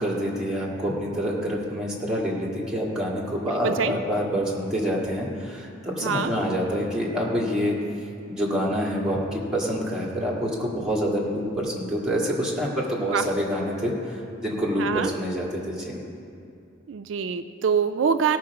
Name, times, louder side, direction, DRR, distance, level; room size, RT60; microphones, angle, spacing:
voice 1, 0.0-7.7 8.3-16.0, equal, 5° right, -5 dB, 1.9 m, -27 dB
voice 2, 3.4-3.9 6.0-6.3 13.0-13.3 14.7-15.1 16.9-18.4, right 6 dB, 75° right, 8 dB, 0.4 m, -25 dB
17.0 x 5.9 x 4.8 m, 2.5 s
head